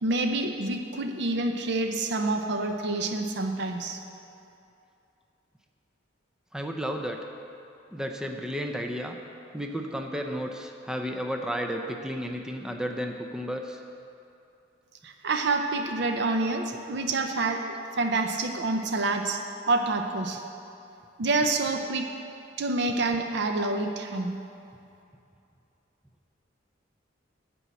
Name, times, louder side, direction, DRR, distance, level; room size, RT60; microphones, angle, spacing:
voice 1, 0.0-4.0 15.0-20.4 21.2-22.1 22.6-24.4, right 2 dB, 60° right, 5 dB, 0.6 m, -27 dB
voice 2, 6.5-7.2 7.9-9.2 9.5-13.8, equal, 5° right, 3 dB, 0.5 m, -32 dB
9.8 x 6.1 x 8.1 m, 2.7 s
head